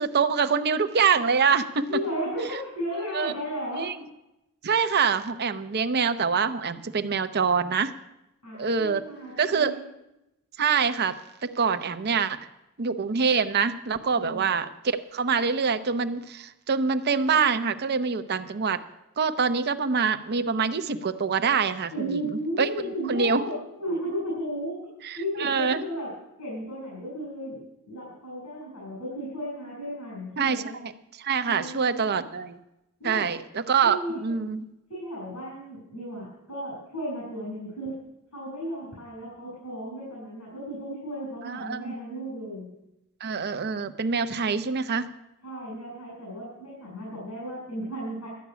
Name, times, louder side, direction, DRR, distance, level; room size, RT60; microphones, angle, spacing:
voice 1, 0.0-1.9 3.1-3.3 3.7-4.0 4.6-7.9 8.5-9.0 9.4-9.7 10.6-12.4 12.8-14.7 15.1-18.8 19.2-22.7 23.1-23.4 25.0-25.8 30.3-30.9 31.2-32.6 33.0-34.7 41.4-41.9 43.2-45.1, right 5 dB, 45° right, 10 dB, 0.7 m, -25 dB
voice 2, 1.9-3.8 8.4-9.8 14.1-14.4 21.9-24.8 25.1-26.1 26.4-30.7 31.4-32.2 33.0-33.3 33.8-34.3 34.9-37.9 38.3-42.7 45.4-48.3, equal, 85° left, -6 dB, 6.2 m, -34 dB
12.5 x 5.9 x 9.4 m, 0.91 s
head